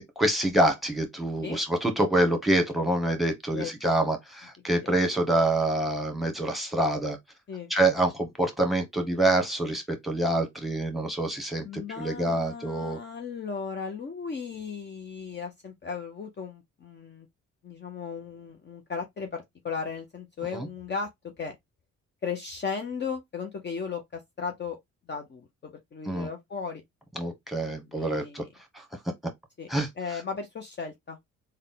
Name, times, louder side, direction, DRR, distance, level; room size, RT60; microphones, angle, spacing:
voice 1, 0.0-7.2 7.7-13.0 20.5-20.7 26.0-26.3 27.1-28.4 28.7-28.8 29.7-29.9, right 1 dB, ahead, 1.3 m, -26 dB
voice 2, 11.6-17.3 17.6-21.1 21.4-21.6 22.2-24.8 25.1-25.5 25.9-26.8 27.6-28.5 29.6-29.7 30.0-31.2, left 5 dB, 35° left, 0.7 m, -36 dB
3.7 x 2.2 x 3.7 m
cardioid pair, 90°, 30 cm